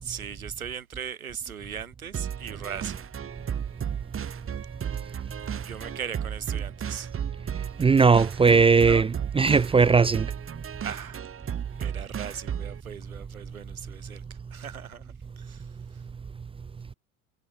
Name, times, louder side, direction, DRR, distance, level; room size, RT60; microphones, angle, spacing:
voice 1, 0.0-3.1 5.4-7.1 8.8-9.1 10.8-11.3 11.8-16.0, right 7 dB, 90° right, 3.5 m, -39 dB
sound 1, 2.1-12.8, right 8 dB, 30° right, 7.8 m, -34 dB
voice 2, 7.8-10.3, right 5 dB, 15° right, 0.7 m, -19 dB
hypercardioid pair, 85°, 41 cm